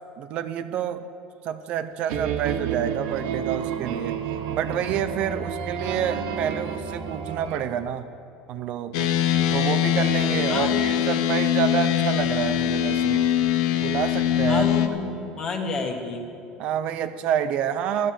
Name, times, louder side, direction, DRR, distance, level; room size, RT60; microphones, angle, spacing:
voice 1, 0.2-1.1 1.4-4.2 4.5-8.1 8.5-9.1 9.5-13.2 13.8-14.7 16.6-18.1, right 9 dB, 40° right, 10 dB, 0.5 m, -28 dB
sound 1, 2.1-7.6, right 7 dB, 65° right, 1.6 m, -30 dB
sound 2, 8.9-14.9, left 10 dB, 80° left, 1.1 m, -22 dB
voice 2, 10.5-11.0 14.4-16.2, left 3 dB, 25° left, 4 dB, 1.5 m, -30 dB
14.5 x 12.0 x 7.5 m, 2.8 s
cardioid pair, 180°, 3 cm